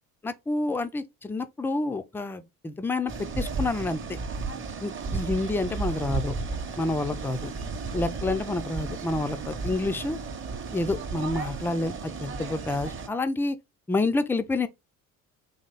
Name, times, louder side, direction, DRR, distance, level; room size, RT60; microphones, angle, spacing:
voice 1, 0.2-4.2 4.8-6.3 6.8-7.5 7.9-10.2 10.7-13.6 13.9-14.7, left 2 dB, 5° left, 0.4 m, -28 dB
sound 1, 3.1-13.1, right 4 dB, 30° right, 0.9 m, -34 dB
4.1 x 2.9 x 3.9 m
figure-of-eight pair, 55°, 42 cm